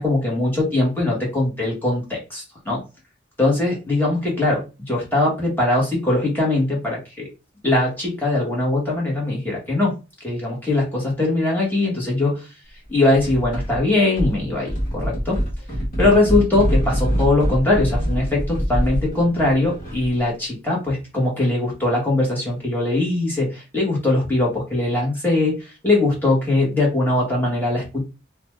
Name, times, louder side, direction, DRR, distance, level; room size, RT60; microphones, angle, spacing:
voice 1, 0.0-2.8 3.4-7.3 7.6-9.9 10.2-12.4 12.9-15.4 16.0-28.0, left 2 dB, 10° left, -3 dB, 1.1 m, -21 dB
sound 1, 13.1-13.8 14.2-20.2, equal, 45° left, 1.1 m, -24 dB
2.5 x 2.2 x 3.1 m, 0.29 s
head